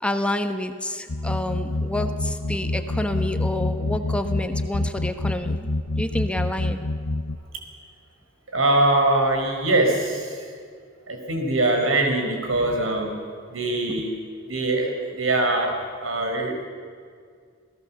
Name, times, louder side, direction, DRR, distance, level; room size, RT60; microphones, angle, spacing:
voice 1, 0.0-5.7 6.0-6.8, left 1 dB, 5° left, 7 dB, 1.1 m, -28 dB
sound 1, 1.1-7.4, left 2 dB, 85° left, 1.0 m, -27 dB
voice 2, 8.5-10.5 11.1-14.2 14.5-16.6, right 2 dB, 90° right, 3 dB, 4.5 m, -23 dB
27.5 x 17.5 x 7.2 m, 2.1 s
head